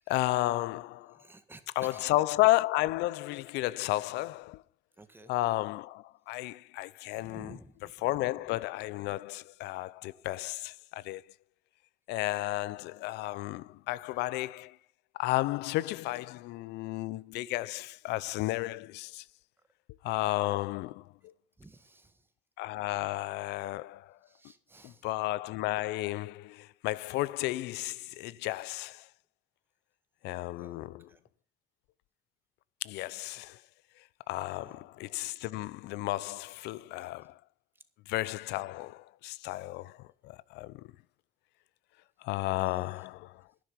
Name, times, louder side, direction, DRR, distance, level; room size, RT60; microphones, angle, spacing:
voice 1, 0.1-1.2 1.8-4.6 5.2-7.6 8.0-11.2 12.1-14.8 15.2-19.2 20.0-21.3 22.6-24.2 24.8-29.1 30.2-31.1 32.8-33.6 34.3-37.4 38.1-40.9 42.2-43.4, left 18 dB, 90° left, 0.6 m, -33 dB
voice 2, 1.2-2.1 5.0-5.3 7.1-7.9 21.6-22.2 24.3-25.0 30.6-31.2 34.4-34.8 42.6-43.0, right 2 dB, 10° right, 1.7 m, -53 dB
11.0 x 10.5 x 5.8 m
cardioid pair, 110°, 17 cm